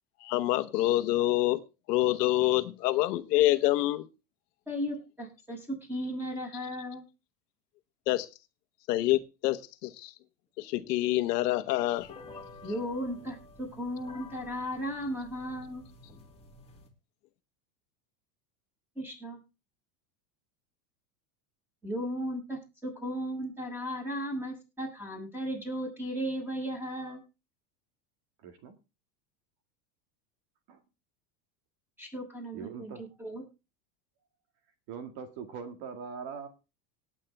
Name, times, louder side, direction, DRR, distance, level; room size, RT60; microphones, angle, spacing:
voice 1, 0.2-1.6 1.9-4.1 8.1-8.3 8.9-10.1 10.6-12.1, left 16 dB, 75° left, 10 dB, 1.2 m, -26 dB
voice 2, 4.7-7.0 12.6-15.9 18.9-19.4 21.8-27.2 32.0-33.4, equal, 5° right, 1 dB, 6.8 m, -36 dB
sound 1, 11.9-16.9, left 3 dB, 10° left, 2.5 m, -50 dB
voice 3, 28.4-28.8 30.7-30.8 32.5-33.1 34.9-36.5, right 6 dB, 50° right, 7 dB, 2.1 m, -42 dB
18.0 x 8.5 x 3.5 m, 0.30 s
supercardioid pair, 145°, 48 cm